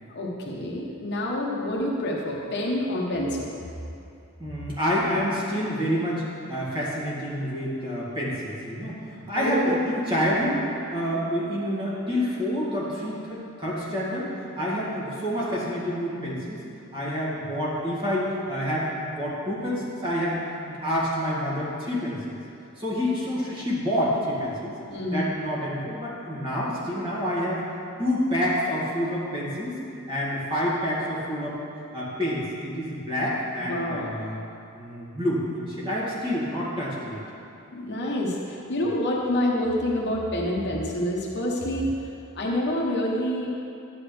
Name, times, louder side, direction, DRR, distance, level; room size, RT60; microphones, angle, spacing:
voice 1, 0.1-3.6 9.3-9.8 24.9-25.3 33.7-34.1 37.7-41.9 42.3-43.5, left 1 dB, 55° left, -2 dB, 1.1 m, -27 dB
voice 2, 4.4-9.0 9.3-10.6 10.9-14.3 14.6-16.6 16.9-20.4 20.7-22.4 22.8-24.7 25.1-27.7 28.0-29.7 30.1-31.6 31.9-34.4 34.7-37.2, equal, 25° right, -8 dB, 2.2 m, -28 dB
11.5 x 8.4 x 3.4 m, 2.6 s
head